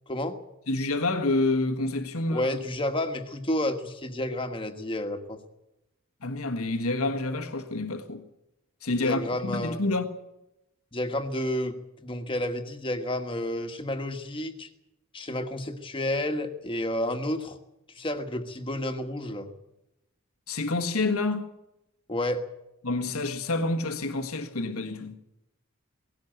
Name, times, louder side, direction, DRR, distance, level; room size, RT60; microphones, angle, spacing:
voice 1, 0.1-0.4 2.3-5.4 9.0-9.8 10.9-14.7 15.1-17.6 17.9-19.5 22.1-22.4, left 1 dB, 25° left, 1.5 m, -30 dB
voice 2, 0.7-2.5 6.2-8.2 8.8-10.0 20.5-21.5 22.8-25.2, left 2 dB, 85° left, 1.5 m, -28 dB
18.0 x 17.0 x 9.2 m
head